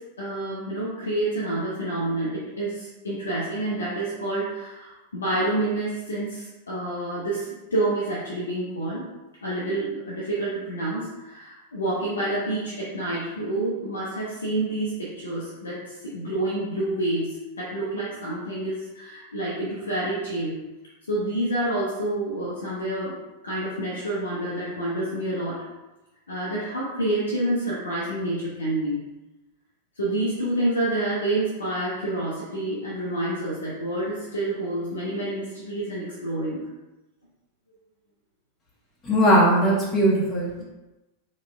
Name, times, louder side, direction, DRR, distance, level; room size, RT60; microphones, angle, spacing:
voice 1, 0.0-9.0 9.4-20.6 21.1-23.1 23.4-25.6 26.3-29.0 30.0-36.7, right 1 dB, 70° left, -7 dB, 0.7 m, -28 dB
voice 2, 39.0-40.6, equal, 20° left, -6 dB, 0.8 m, -19 dB
4.2 x 2.1 x 3.3 m, 1.0 s
figure-of-eight pair, 90°, 0 cm